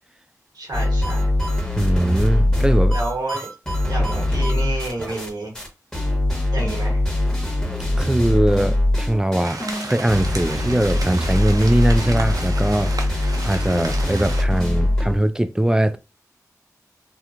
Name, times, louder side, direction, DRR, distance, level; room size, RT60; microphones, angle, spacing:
voice 1, 0.5-1.3 2.9-3.5 3.9-5.5 6.5-7.0, right 2 dB, 90° right, 1.1 m, -29 dB
sound 1, 0.7-5.3 5.5-5.7 5.9-15.2, left 1 dB, 10° left, 1.1 m, -22 dB
voice 2, 1.7-3.0 8.0-16.0, right 1 dB, 10° right, 0.3 m, -21 dB
sound 2, 9.4-14.4, right 3 dB, 70° right, 0.6 m, -33 dB
2.9 x 2.2 x 2.5 m
cardioid pair, 50°, 6 cm